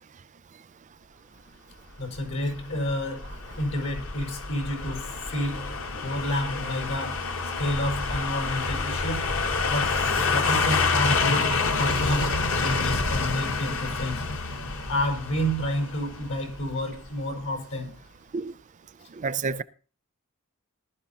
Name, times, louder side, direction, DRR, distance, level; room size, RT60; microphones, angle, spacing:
voice 1, 2.0-9.3 9.7-14.3 14.9-18.0, left 1 dB, 80° left, 5.2 m, -30 dB
sound 1, 2.2-17.1 17.4-17.5, left 4 dB, 65° left, 1.2 m, -28 dB
voice 2, 19.2-19.6, right 4 dB, 35° right, 0.5 m, -29 dB
18.5 x 12.5 x 2.8 m
head